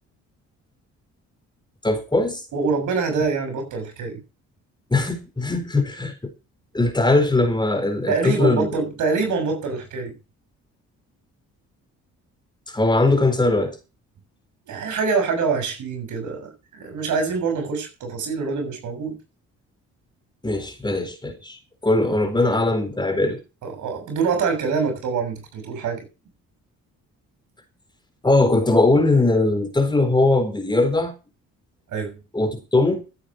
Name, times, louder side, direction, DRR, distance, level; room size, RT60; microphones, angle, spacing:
voice 1, 1.8-2.4 4.9-6.3 6.7-8.7 12.7-13.8 20.4-23.4 28.2-31.1 32.3-33.0, left 2 dB, 15° left, 4.1 m, -20 dB
voice 2, 2.5-4.2 8.1-10.1 14.7-19.2 23.6-26.1 31.9-32.2, right 4 dB, 80° right, 6.9 m, -25 dB
15.0 x 8.7 x 5.5 m
cardioid pair, 90°, 30 cm